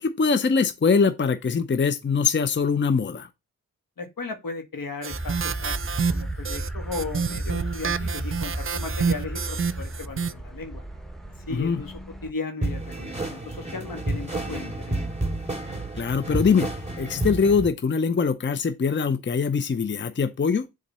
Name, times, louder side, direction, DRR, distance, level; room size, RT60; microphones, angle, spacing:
voice 1, 0.0-3.3 11.5-11.8 16.0-16.7 17.0-20.7, left 5 dB, 35° left, 0.6 m, -22 dB
voice 2, 4.0-5.8 6.1-10.8 11.5-15.0, left 3 dB, 75° left, 1.7 m, -36 dB
sound 1, 5.0-10.3, right 6 dB, 40° right, 0.5 m, -28 dB
sound 2, 5.1-12.3, right 1 dB, ahead, 1.1 m, -34 dB
sound 3, 12.6-17.7, right 2 dB, 20° right, 2.8 m, -30 dB
7.1 x 3.8 x 5.5 m
wide cardioid pair, 75°, 34 cm